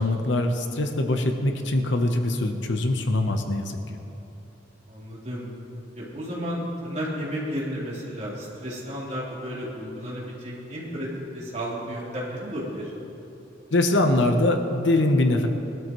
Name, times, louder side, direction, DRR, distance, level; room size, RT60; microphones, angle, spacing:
voice 1, 0.0-4.0 13.7-15.5, left 2 dB, 70° left, 5 dB, 1.0 m, -23 dB
voice 2, 4.9-5.5 6.0-11.1 11.3-12.9, equal, 40° right, -7 dB, 3.6 m, -32 dB
20.5 x 12.0 x 3.1 m, 2.9 s
head